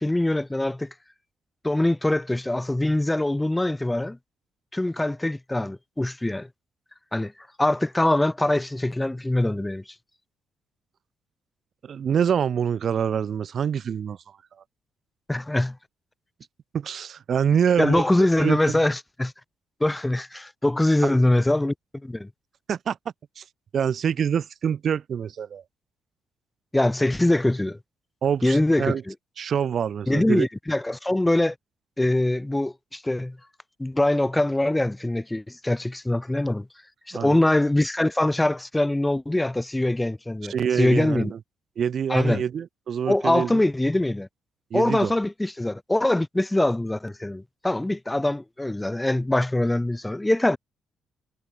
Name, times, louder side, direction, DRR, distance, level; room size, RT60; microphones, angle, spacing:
voice 1, 0.0-0.9 1.6-4.2 4.7-6.5 7.1-7.3 7.6-9.8 15.3-15.8 17.8-19.3 19.8-21.7 22.0-22.3 26.7-27.8 28.4-29.1 30.1-31.5 32.0-33.4 33.8-36.7 37.1-41.3 42.1-42.4 43.1-44.3 44.7-50.6, left 1 dB, 10° left, 1.3 m, -23 dB
voice 2, 11.8-14.2 16.7-18.1 18.4-18.8 21.0-21.1 22.7-23.0 23.4-23.5 23.7-25.6 28.2-29.0 29.4-30.5 37.1-37.5 40.4-41.4 41.8-43.6 44.7-45.1, right 8 dB, 55° right, 2.5 m, -25 dB
cardioid pair, 90°, 0 cm